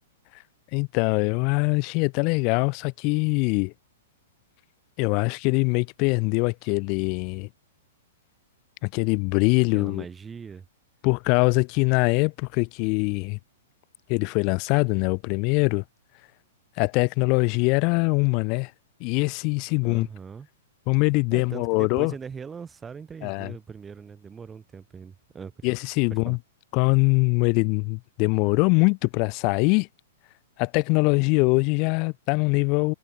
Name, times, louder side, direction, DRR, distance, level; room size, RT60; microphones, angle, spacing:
voice 1, 0.7-3.7 5.0-7.5 8.8-10.0 11.0-13.4 14.1-15.8 16.8-18.7 19.0-20.1 20.9-22.1 23.2-23.5 25.6-26.4 26.7-29.9 30.6-32.9, left 32 dB, 40° left, 0.4 m, -23 dB
voice 2, 9.7-10.6 19.8-20.5 21.3-25.7 26.3-26.4, right 6 dB, 15° right, 5.9 m, -40 dB
hypercardioid pair, 110°, 0 cm